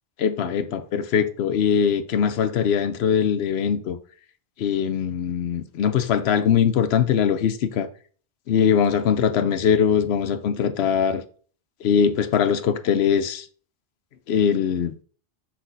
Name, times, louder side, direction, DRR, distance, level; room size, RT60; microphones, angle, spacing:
voice 1, 0.2-4.0 4.6-7.9 8.5-11.2 11.8-13.5 14.3-14.9, left 7 dB, 85° left, 0.9 m, -21 dB
6.1 x 5.9 x 2.6 m
omnidirectional pair, 1.0 m